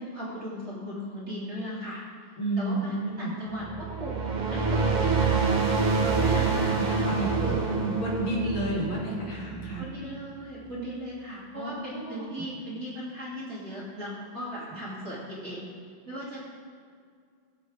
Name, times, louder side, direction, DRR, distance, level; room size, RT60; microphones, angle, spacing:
voice 1, 0.0-2.0 2.6-4.2 4.5-5.6 6.0-6.9 7.5-7.6 9.8-15.7 16.0-16.4, equal, 30° right, -8 dB, 3.1 m, -37 dB
voice 2, 2.4-3.3 6.2-9.8 11.5-12.2, right 1 dB, 75° left, -6 dB, 3.5 m, -31 dB
sound 1, 3.6-10.2, right 4 dB, 50° right, 0.5 m, -27 dB
18.0 x 8.1 x 3.5 m, 2.2 s
omnidirectional pair, 2.2 m